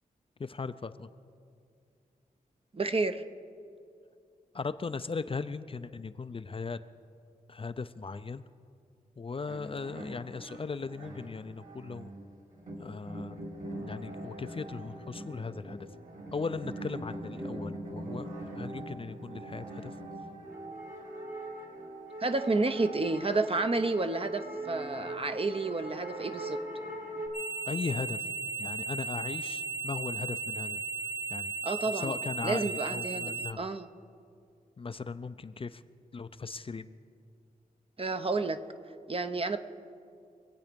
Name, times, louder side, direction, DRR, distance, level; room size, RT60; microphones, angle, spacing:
voice 1, 0.4-1.1 4.5-6.8 7.5-8.4 9.2-12.1 12.8-13.5 13.8-15.8 16.3-19.9 27.7-28.3 28.6-30.8 31.3-31.5 31.9-33.6 34.8-35.8 36.1-36.9, left 4 dB, 35° left, 12 dB, 0.5 m, -38 dB
voice 2, 2.7-3.2 22.2-26.6 31.6-32.2 32.4-33.9 38.0-38.6 39.1-39.6, right 3 dB, 40° right, 8 dB, 0.8 m, -30 dB
sound 1, 9.5-27.3, right 1 dB, 55° right, 3.1 m, -42 dB
sound 2, 27.3-33.5, right 4 dB, 15° right, 0.5 m, -36 dB
24.5 x 8.3 x 5.2 m, 2.3 s
cardioid pair, 70°, 15 cm